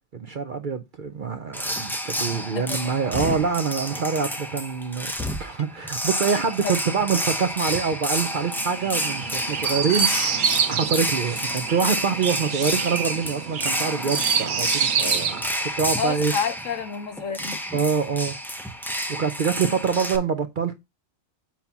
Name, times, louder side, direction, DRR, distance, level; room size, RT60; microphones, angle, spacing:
voice 1, 0.1-5.1 5.4-10.4 10.7-16.3 17.7-18.4 19.1-20.8, right 6 dB, 50° right, 0.6 m, -25 dB
sound 1, 1.5-20.2, equal, ahead, 0.5 m, -30 dB
voice 2, 2.3-2.9 6.6-6.8 16.0-17.6, left 6 dB, 75° left, 1.3 m, -29 dB
sound 2, 5.6-6.6 9.3-11.0, left 7 dB, 55° left, 0.5 m, -39 dB
Chirp tweet, 8.2-15.4, right 7 dB, 85° right, 1.2 m, -27 dB
7.5 x 2.8 x 5.7 m
omnidirectional pair, 1.3 m